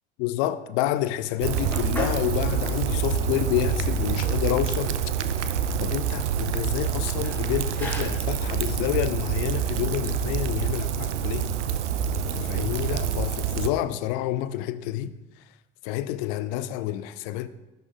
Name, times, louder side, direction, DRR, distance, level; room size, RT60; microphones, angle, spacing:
voice 1, 0.2-5.0 5.8-11.5 12.2-15.1 15.8-17.5, left 13 dB, 55° left, 0.5 m, -29 dB
Rain, 1.4-13.7, right 7 dB, 75° right, 0.5 m, -27 dB
sound 1, 1.7-2.3 2.7-2.8 3.6-3.7 4.0-5.0 5.9-6.5 7.2-8.4 9.1-9.4 10.0-10.5, equal, 5° left, 1.3 m, -39 dB
11.0 x 3.6 x 3.7 m
figure-of-eight pair, 65°, 36 cm